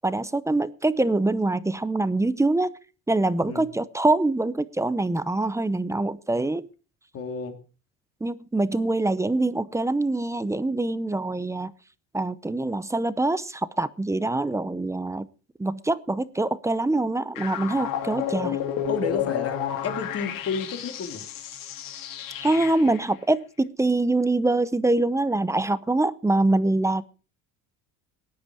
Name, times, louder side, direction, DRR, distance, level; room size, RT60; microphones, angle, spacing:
voice 1, 0.0-2.7 3.1-6.6 8.2-11.7 12.1-15.3 15.6-18.6 22.4-27.0, right 2 dB, 10° right, 0.7 m, -24 dB
voice 2, 7.1-7.5 18.9-21.2, left 5 dB, 40° left, 3.2 m, -31 dB
sound 1, 17.4-23.1, left 9 dB, 65° left, 2.1 m, -31 dB
18.0 x 10.5 x 4.8 m
cardioid pair, 130°, 37 cm